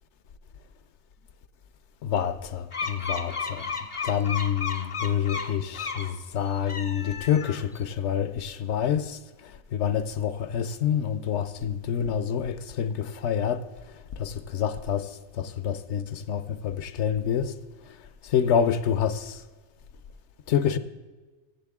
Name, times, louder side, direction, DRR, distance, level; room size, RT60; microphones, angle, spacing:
voice 1, 2.0-3.7 4.0-17.5 17.9-18.0 18.2-19.4 20.5-20.8, left 8 dB, 65° left, 0.9 m, -27 dB
sound 1, 2.7-6.1 6.6-7.8, left 5 dB, 35° left, 0.6 m, -33 dB
15.5 x 7.2 x 3.6 m
omnidirectional pair, 1.4 m